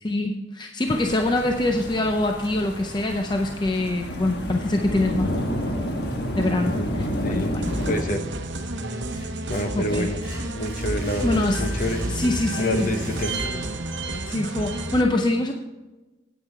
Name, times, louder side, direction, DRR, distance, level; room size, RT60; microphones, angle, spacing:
voice 1, 0.0-5.8 6.4-7.7 9.8-10.1 11.2-11.7 12.1-12.9 14.3-15.5, left 1 dB, 25° left, 4 dB, 0.5 m, -24 dB
sound 1, 0.9-8.0, equal, 60° left, 1.3 m, -29 dB
voice 2, 6.6-6.9 7.2-7.5 7.9-8.2 9.5-10.2 10.5-12.0 12.6-13.4, left 1 dB, 45° left, 7 dB, 0.9 m, -28 dB
sound 2, 7.6-8.4 8.8-13.9, right 1 dB, 10° right, 3.1 m, -34 dB
sound 3, 7.6-15.0, right 2 dB, 75° right, 0.9 m, -31 dB
9.3 x 8.5 x 4.5 m, 1.1 s
head